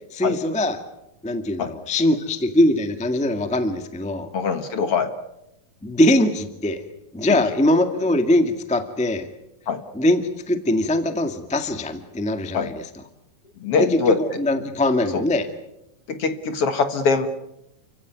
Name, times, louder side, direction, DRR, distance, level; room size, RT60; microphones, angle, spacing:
voice 1, 0.1-0.8 1.2-4.3 5.8-6.8 7.1-9.3 9.9-12.8 13.8-15.5, left 1 dB, 10° left, 8 dB, 0.5 m, -21 dB
voice 2, 4.3-5.1 7.3-7.4 9.7-9.8 12.5-12.7 13.6-14.2 15.1-15.2 16.1-17.3, left 5 dB, 50° left, 9 dB, 1.9 m, -22 dB
30.0 x 16.0 x 9.4 m, 0.87 s
omnidirectional pair, 4.2 m